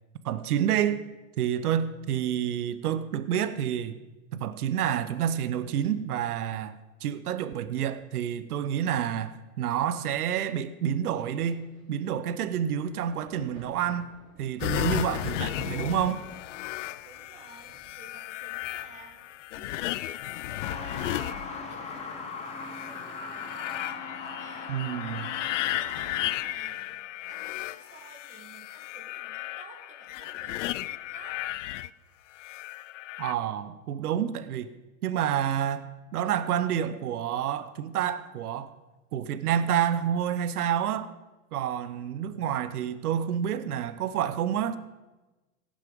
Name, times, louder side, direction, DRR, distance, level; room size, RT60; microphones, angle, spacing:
voice 1, 0.2-1.1 1.4-4.0 4.3-14.1 14.4-16.2 24.7-25.3 33.2-34.7 35.0-38.7 39.1-41.1 41.5-44.8, right 9 dB, 70° right, 1.0 m, -29 dB
Thunder, 11.1-24.5 24.7-26.1 26.9-27.1, right 2 dB, 35° right, 3.8 m, -58 dB
sound 1, 14.6-22.0 22.5-31.9 32.4-33.3, left 15 dB, 55° left, 0.5 m, -34 dB
voice 2, 17.0-19.3 19.5-24.8 25.0-27.0 27.3-30.7 31.1-31.4, right 4 dB, 15° right, 2.1 m, -53 dB
Truck, 20.6-26.4, left 4 dB, 15° left, 1.2 m, -39 dB
16.5 x 7.5 x 5.3 m
hypercardioid pair, 140°, 46 cm